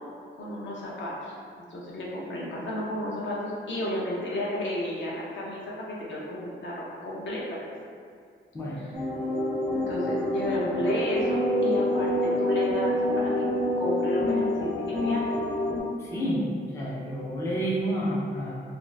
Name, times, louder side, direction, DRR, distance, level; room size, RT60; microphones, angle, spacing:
voice 1, 0.4-7.6 9.7-13.5 13.8-15.3, left 1 dB, 65° left, -5 dB, 0.7 m, -32 dB
sound 1, 8.9-15.8, left 1 dB, 40° left, 1.2 m, -27 dB
voice 2, 16.0-18.6, equal, 15° left, -6 dB, 0.3 m, -29 dB
2.5 x 2.3 x 3.1 m, 2.3 s
wide cardioid pair, 180°, 20 cm